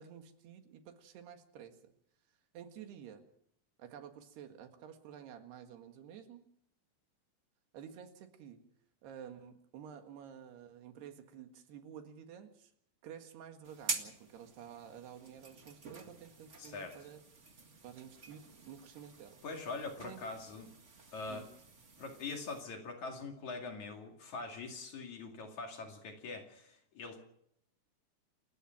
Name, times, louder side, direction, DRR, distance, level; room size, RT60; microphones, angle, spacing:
voice 1, 0.0-1.9 2.5-3.3 3.8-6.4 7.7-8.6 9.0-12.7 13.0-17.2 17.8-19.4 20.0-20.2 21.3-21.4, right 8 dB, 80° right, 6 dB, 3.9 m, -51 dB
sound 1, 13.6-22.6, right 4 dB, 50° right, 0.8 m, -47 dB
voice 2, 16.6-17.0 19.4-20.7 21.1-21.5 22.0-27.2, left 3 dB, 50° left, 3 dB, 3.5 m, -43 dB
28.5 x 15.0 x 6.0 m, 0.71 s
omnidirectional pair, 4.6 m